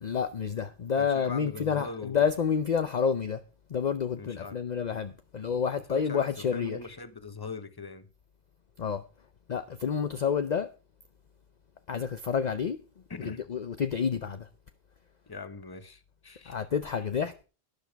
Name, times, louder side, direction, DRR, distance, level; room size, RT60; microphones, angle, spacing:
voice 1, 0.0-3.4 3.7-6.8 8.8-9.0 9.5-10.7 11.9-12.8 13.2-14.5 16.5-17.3, left 6 dB, 50° left, 0.7 m, -29 dB
voice 2, 1.0-2.2 4.2-4.6 5.9-8.1 13.1-13.4 15.3-16.6, left 3 dB, 25° left, 1.0 m, -41 dB
12.0 x 10.5 x 4.6 m
omnidirectional pair, 1.0 m